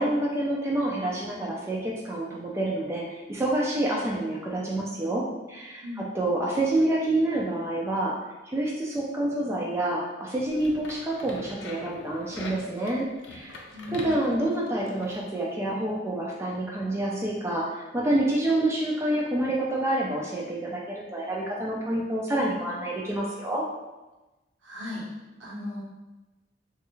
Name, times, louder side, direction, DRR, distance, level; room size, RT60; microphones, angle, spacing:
voice 1, 0.0-8.1 8.4-13.6 13.9-23.6, right 1 dB, 15° right, -3 dB, 0.3 m, -28 dB
sound 1, 10.4-15.2, left 2 dB, 80° left, 0.4 m, -43 dB
voice 2, 13.7-14.2 24.6-25.0 25.4-25.8, left 1 dB, 70° right, -5 dB, 0.9 m, -37 dB
3.1 x 2.3 x 3.0 m, 1.1 s
head